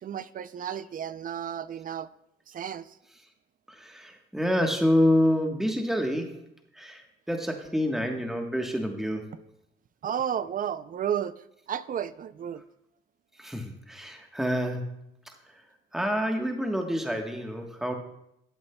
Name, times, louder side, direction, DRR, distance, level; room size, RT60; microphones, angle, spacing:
voice 1, 0.0-2.1 2.5-3.0 10.0-11.3 11.7-12.6, right 9 dB, 45° right, 15 dB, 0.4 m, -32 dB
voice 2, 3.7-6.4 6.7-7.0 7.3-9.3 13.4-14.8 15.9-17.9, equal, ahead, 3 dB, 1.2 m, -27 dB
14.0 x 7.8 x 2.2 m, 0.78 s
cardioid pair, 90°, 20 cm